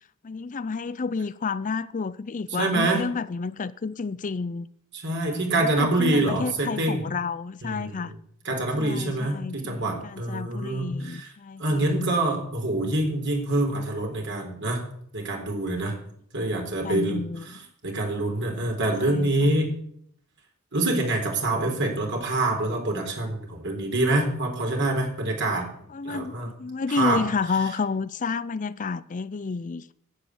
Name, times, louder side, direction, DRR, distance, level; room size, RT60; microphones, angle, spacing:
voice 1, 0.2-4.7 5.3-8.1 8.8-11.9 16.8-17.6 19.0-19.5 25.9-29.9, left 4 dB, 35° left, 0.5 m, -30 dB
voice 2, 2.6-3.0 4.9-7.0 7.6-8.1 8.4-11.3 11.6-14.8 15.1-15.9 16.3-17.2 17.8-19.7 20.7-25.7 26.0-26.5 26.9-27.2, right 2 dB, 55° right, 3.9 m, -26 dB
11.5 x 8.5 x 9.7 m
head